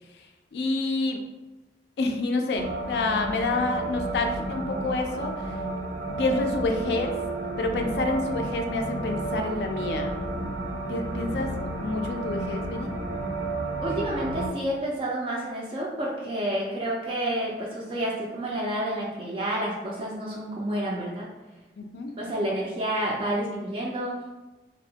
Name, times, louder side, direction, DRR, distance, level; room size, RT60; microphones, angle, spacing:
voice 1, 0.5-1.2 2.0-5.6 6.2-7.1 7.6-10.6 10.9-12.9 21.8-22.1, left 3 dB, 70° left, 4 dB, 0.3 m, -28 dB
sound 1, 2.5-14.5, right 2 dB, 80° right, 0.5 m, -32 dB
voice 2, 13.8-21.3 22.2-24.1, right 1 dB, 30° right, -4 dB, 0.3 m, -29 dB
2.7 x 2.1 x 2.7 m, 1.1 s
head